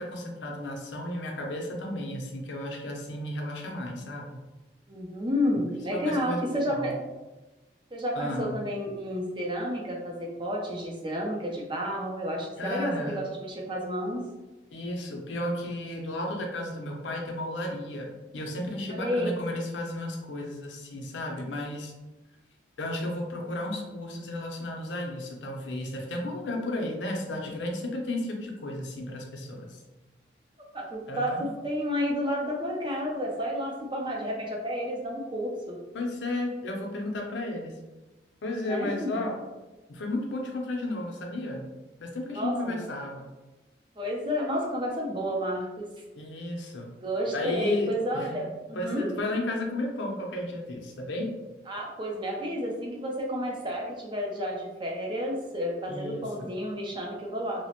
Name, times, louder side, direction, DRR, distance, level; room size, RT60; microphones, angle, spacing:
voice 1, 0.0-4.4 5.9-6.4 6.7-7.0 8.1-8.6 12.6-13.2 14.7-21.9 22.8-29.8 31.1-31.5 35.9-37.8 38.4-39.4 39.9-41.6 42.0-43.3 46.2-46.9 47.3-48.3 48.7-51.3 55.9-56.5, left 1 dB, 80° left, 1 dB, 0.6 m, -33 dB
voice 2, 4.9-7.0 7.9-14.2 18.9-19.3 30.7-35.8 38.6-39.3 42.3-42.8 44.0-45.9 47.0-49.1 51.7-57.7, equal, 25° right, -2 dB, 0.5 m, -31 dB
2.9 x 2.1 x 2.8 m, 1.1 s
head